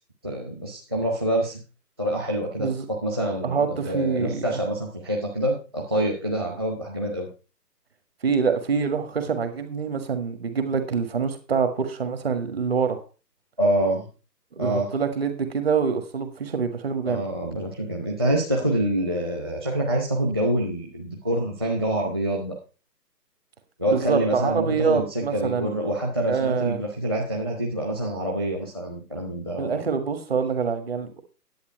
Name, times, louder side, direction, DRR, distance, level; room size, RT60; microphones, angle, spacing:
voice 1, 0.2-1.6 2.0-7.3 13.6-14.1 14.6-14.9 17.1-22.6 23.8-29.7, right 1 dB, 15° right, 1 dB, 0.8 m, -26 dB
voice 2, 3.4-4.6 8.2-13.0 14.6-17.3 23.9-25.8 26.3-26.8 29.6-31.2, right 6 dB, 35° right, 8 dB, 1.6 m, -25 dB
10.5 x 8.6 x 4.5 m, 0.33 s
figure-of-eight pair, 145°, 50 cm